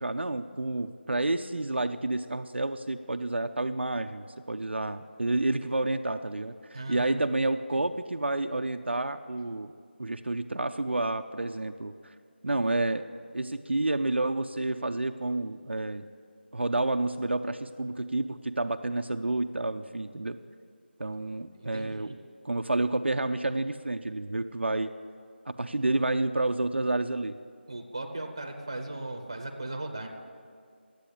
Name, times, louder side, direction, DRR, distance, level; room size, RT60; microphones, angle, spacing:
voice 1, 0.0-9.7 10.0-12.1 12.4-13.0 13.3-16.0 16.5-20.4 21.0-22.1 22.4-24.9 25.5-27.4, right 2 dB, 70° right, 7 dB, 0.5 m, -29 dB
voice 2, 6.7-7.2 7.7-7.8 21.5-22.2 27.7-30.1, right 2 dB, 25° right, 3 dB, 0.9 m, -37 dB
11.5 x 8.3 x 8.5 m, 2.1 s
figure-of-eight pair, 180°, 6 cm